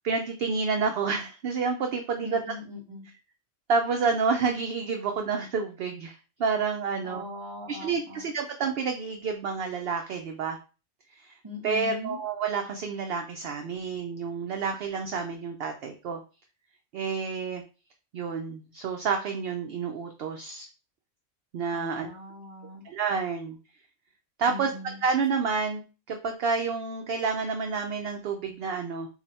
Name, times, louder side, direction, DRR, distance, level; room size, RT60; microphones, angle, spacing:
voice 1, 0.0-2.4 3.7-7.2 7.7-10.6 11.1-11.4 11.6-16.2 16.9-17.6 18.1-20.7 21.5-22.1 22.8-23.6 24.4-24.7 25.0-25.8 26.1-29.1, right 5 dB, 65° right, 4 dB, 0.6 m, -29 dB
voice 2, 2.2-3.1 7.0-8.2 11.4-12.2 21.7-22.8 24.5-25.0, left 2 dB, 25° right, 0 dB, 0.9 m, -40 dB
4.0 x 2.2 x 4.0 m, 0.34 s
omnidirectional pair, 1.4 m